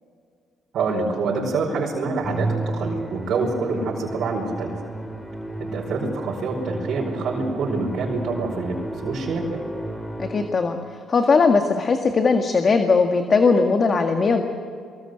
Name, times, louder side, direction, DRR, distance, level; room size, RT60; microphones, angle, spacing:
voice 1, 0.7-4.7 5.6-9.6, right 3 dB, 70° right, -2 dB, 4.8 m, -26 dB
Musical instrument, 2.2-10.8, right 2 dB, 15° left, 3.9 m, -32 dB
voice 2, 10.2-10.8 11.1-14.4, left 4 dB, 40° left, 5 dB, 1.8 m, -19 dB
23.5 x 22.0 x 8.0 m, 2.2 s
cardioid pair, 90°, 0 cm